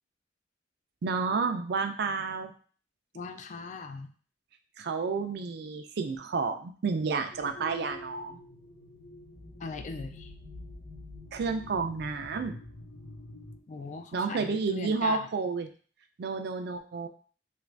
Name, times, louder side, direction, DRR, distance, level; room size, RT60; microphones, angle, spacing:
voice 1, 1.0-2.5 4.8-8.4 11.3-12.6 14.1-15.7 16.2-17.1, right 4 dB, 60° right, 6 dB, 0.4 m, -30 dB
voice 2, 3.1-4.1 9.6-10.3 13.7-15.3, left 4 dB, 45° left, 7 dB, 0.3 m, -39 dB
sound 1, 7.3-13.6, left 1 dB, 90° left, 1.0 m, -46 dB
3.0 x 2.5 x 3.3 m, 0.42 s
head